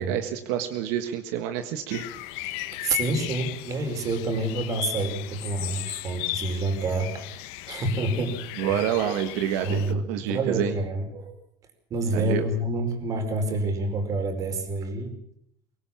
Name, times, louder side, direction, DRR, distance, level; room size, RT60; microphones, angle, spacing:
voice 1, 0.0-2.1 8.6-10.7 12.1-12.5, right 10 dB, 85° right, 7 dB, 1.7 m, -28 dB
sound 1, 1.9-9.9, left 18 dB, 80° left, 1.4 m, -36 dB
voice 2, 2.5-7.3 7.7-8.3 8.7-8.9 9.6-11.3 11.9-15.1, right 2 dB, 45° right, 6 dB, 4.9 m, -28 dB
24.0 x 18.0 x 7.3 m, 0.74 s
cardioid pair, 125°, 8 cm